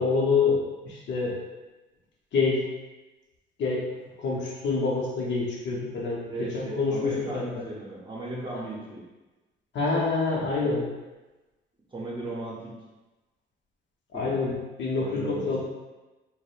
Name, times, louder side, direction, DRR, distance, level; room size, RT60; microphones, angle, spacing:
voice 1, 0.0-1.4 2.3-2.6 3.6-3.9 4.2-7.4 8.5-8.6 9.7-10.8 14.1-15.6, left 4 dB, 65° left, -4 dB, 0.7 m, -27 dB
voice 2, 6.3-9.0 10.6-10.7 11.9-12.7 14.1-14.4 14.9-15.6, right 1 dB, 25° right, -4 dB, 0.7 m, -36 dB
2.6 x 2.0 x 2.4 m, 1.1 s
cardioid pair, 90°, 20 cm